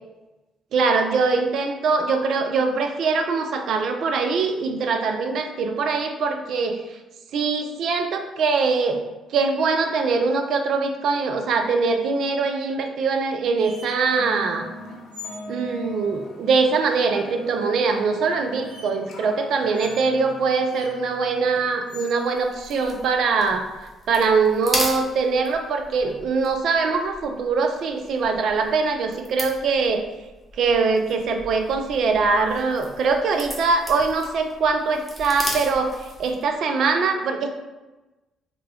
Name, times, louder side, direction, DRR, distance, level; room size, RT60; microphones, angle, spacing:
voice 1, 0.7-6.8 7.3-9.0 9.3-14.6 15.5-23.7 24.1-30.0 30.6-37.5, right 4 dB, 65° right, 5 dB, 0.4 m, -22 dB
sound 1, 13.6-22.2, left 1 dB, 60° left, 0.6 m, -41 dB
sound 2, 13.6-13.9 15.1-15.5 17.7-17.8 18.6-18.9 19.7-20.0 20.7-20.9 21.9-22.2 22.6-22.8 24.7-25.3 28.2-28.3, left 3 dB, 85° right, 0.8 m, -42 dB
sound 3, 22.1-36.5, equal, 10° right, 1.1 m, -36 dB
3.2 x 2.3 x 3.5 m, 1.1 s
hypercardioid pair, 45°, 0 cm